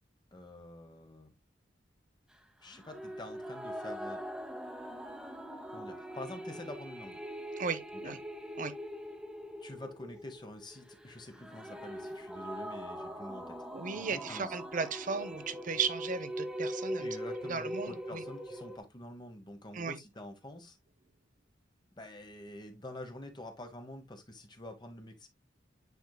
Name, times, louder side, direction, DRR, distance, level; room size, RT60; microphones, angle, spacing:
voice 1, 0.3-1.3 2.6-4.2 5.2-5.3 5.7-7.2 8.0-8.1 9.6-13.6 13.9-14.5 17.0-20.8 22.0-25.3, left 1 dB, 25° left, 1.0 m, -47 dB
sound 1, 2.7-18.8, equal, 5° right, 1.0 m, -42 dB
voice 2, 7.6-8.2 8.6-8.7 13.7-17.1 17.5-18.2 19.7-20.0, right 5 dB, 45° right, 0.8 m, -36 dB
9.3 x 4.5 x 2.2 m
head